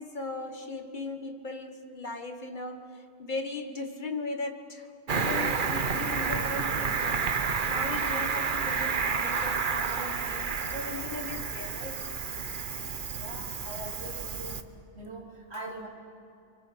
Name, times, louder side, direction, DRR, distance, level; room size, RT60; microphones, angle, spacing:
voice 1, 0.0-12.0, left 3 dB, 50° left, 6 dB, 1.8 m, -38 dB
Cricket, 5.1-14.6, right 5 dB, 50° right, 1.1 m, -30 dB
voice 2, 13.1-14.6 14.9-15.9, right 2 dB, 80° right, 0 dB, 3.4 m, -42 dB
30.0 x 24.5 x 5.8 m, 2.5 s
omnidirectional pair, 1.1 m